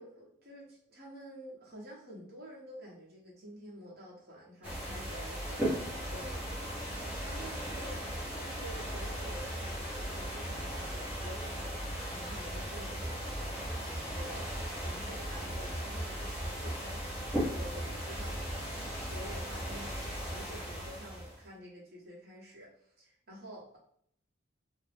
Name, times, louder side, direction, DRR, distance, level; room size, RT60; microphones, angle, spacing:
voice 1, 0.0-23.8, equal, 50° right, -4 dB, 0.9 m, -49 dB
sound 1, 4.6-21.4, equal, 5° right, 0.9 m, -37 dB
2.4 x 2.2 x 3.3 m, 0.66 s
head